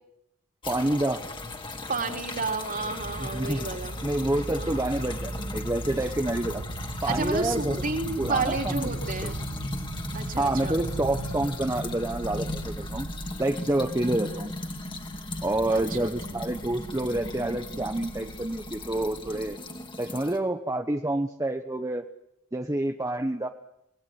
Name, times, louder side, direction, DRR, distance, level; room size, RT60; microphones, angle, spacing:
sound 1, 0.6-20.4, left 2 dB, 25° left, 2.7 m, -37 dB
voice 1, 0.7-1.2 3.2-3.7 4.0-6.6 7.0-7.8 8.2-8.9 9.2-9.3 10.4-13.1 13.4-14.5 15.4-19.6 20.0-22.0 22.5-23.5, right 1 dB, 15° right, 5 dB, 1.1 m, -28 dB
voice 2, 1.9-4.0 4.6-4.9 7.1-9.4 10.1-10.8 15.7-16.1, right 3 dB, 40° right, 3 dB, 3.7 m, -31 dB
sound 2, 3.0-19.6, right 2 dB, 60° right, 1.1 m, -39 dB
27.5 x 20.0 x 9.6 m, 0.83 s
head